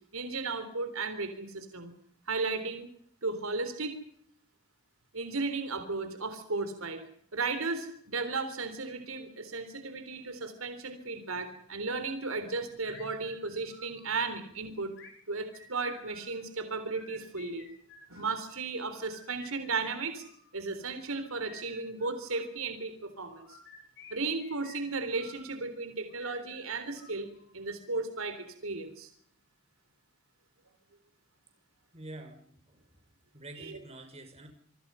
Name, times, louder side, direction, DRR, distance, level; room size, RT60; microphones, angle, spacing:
voice 1, 0.1-1.9 2.3-2.9 3.2-4.0 5.1-7.0 7.3-14.9 15.3-17.7 18.1-20.2 20.5-23.6 24.1-29.1 33.6-33.8, right 3 dB, 85° right, 9 dB, 3.7 m, -35 dB
sound 1, 12.8-14.3 14.9-16.3 16.8-18.4 18.9-20.5 21.0-22.5 23.2-25.5 26.1-27.6, left 3 dB, 60° left, 6.4 m, -54 dB
voice 2, 31.9-33.0 33.3-34.5, right 1 dB, 30° right, 5 dB, 6.0 m, -47 dB
27.0 x 24.0 x 5.7 m, 0.63 s
head